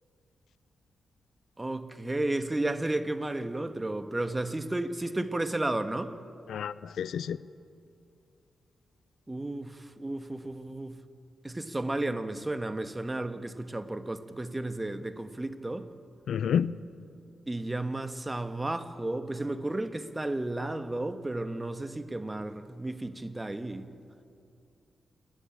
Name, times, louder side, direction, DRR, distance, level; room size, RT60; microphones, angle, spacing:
voice 1, 1.6-6.2 9.3-11.0 11.4-15.9 17.5-23.9, right 2 dB, 20° right, 1.6 m, -33 dB
voice 2, 6.5-7.4 16.3-16.7, left 8 dB, 80° left, 0.5 m, -29 dB
28.0 x 10.5 x 8.6 m
supercardioid pair, 45°, 0 cm